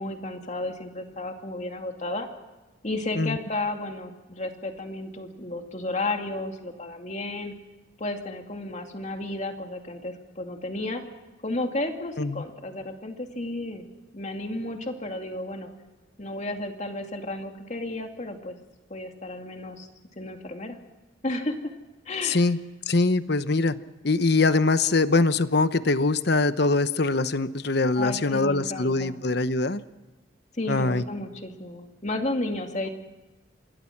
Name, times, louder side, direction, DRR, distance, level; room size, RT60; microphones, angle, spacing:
voice 1, 0.0-2.3 2.8-7.5 8.0-11.0 11.4-13.8 14.1-15.7 16.2-18.6 18.9-19.9 20.2-20.8 21.2-21.6 22.1-22.4 28.0-29.2 30.5-32.9, left 2 dB, 35° left, 4 dB, 2.4 m, -32 dB
voice 2, 22.2-22.6 22.9-23.8 24.0-29.8 30.7-31.0, left 3 dB, 55° left, 12 dB, 1.0 m, -23 dB
27.5 x 21.0 x 6.0 m, 1.1 s
head